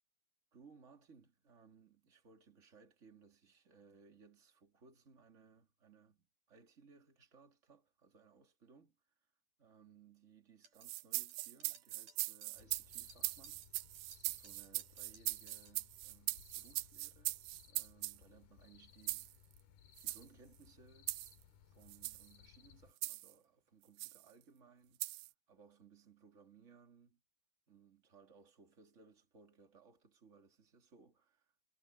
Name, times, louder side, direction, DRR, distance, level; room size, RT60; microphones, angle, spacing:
voice 1, 0.5-9.0 9.6-13.6 14.1-17.4 17.6-19.3 20.0-21.2 21.7-25.0 25.5-27.2 27.7-31.6, right 5 dB, 25° right, 2.1 m, -64 dB
sound 1, 10.6-15.8, right 3 dB, 60° right, 8.9 m, -62 dB
sound 2, 10.8-18.2 19.1-19.3 20.0-20.2 21.1-21.3 21.9-22.3 23.0-23.3 24.0-24.2 25.0-25.3, right 21 dB, 80° right, 2.1 m, -41 dB
sound 3, 12.5-22.9, left 8 dB, 80° left, 3.6 m, -64 dB
omnidirectional pair, 4.3 m